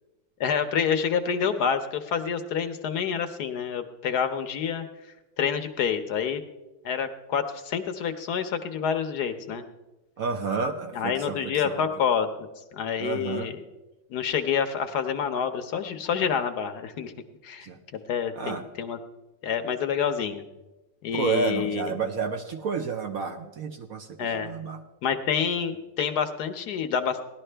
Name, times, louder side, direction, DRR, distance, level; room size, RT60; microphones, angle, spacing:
voice 1, 0.4-4.8 5.4-6.4 6.8-9.6 10.9-13.6 14.1-17.1 17.4-19.0 19.4-20.4 21.0-21.9 24.2-24.5 25.0-27.2, left 7 dB, 65° left, 9 dB, 1.2 m, -28 dB
voice 2, 10.2-11.8 13.0-13.5 17.6-17.8 18.3-18.7 21.1-24.8, right 5 dB, 60° right, 6 dB, 1.1 m, -30 dB
18.0 x 11.5 x 3.3 m, 1.1 s
omnidirectional pair, 2.0 m